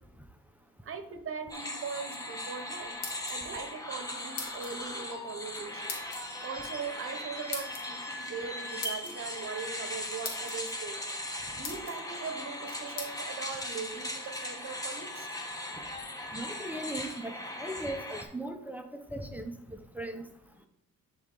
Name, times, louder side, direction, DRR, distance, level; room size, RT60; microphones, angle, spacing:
voice 1, 0.8-3.0 3.3-6.0 6.4-11.0 11.5-15.3, right 5 dB, 45° right, 8 dB, 1.0 m, -40 dB
sound 1, 1.5-18.2, left 1 dB, 10° left, 1.1 m, -39 dB
sound 2, 2.8-3.6 4.4-4.8 5.9-6.2 7.5-7.8 8.8-9.1 9.9-10.0 10.2-10.6 11.2-11.3 11.6-12.0 13.0-13.1, left 4 dB, 70° left, 1.8 m, -39 dB
voice 2, 16.3-20.2, right 1 dB, 5° right, 6 dB, 0.7 m, -38 dB
10.0 x 3.8 x 3.8 m, 0.77 s
cardioid pair, 90°, 30 cm